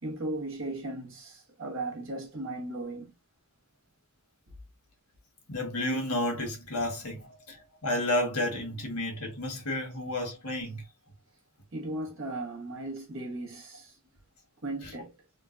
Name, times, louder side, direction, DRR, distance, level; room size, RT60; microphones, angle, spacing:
voice 1, 0.0-3.1 11.7-14.0 14.6-15.2, right 2 dB, 60° right, 1.2 m, -36 dB
voice 2, 5.5-10.8 14.8-14.9, left 1 dB, 90° left, 1.4 m, -31 dB
3.7 x 2.3 x 2.5 m
head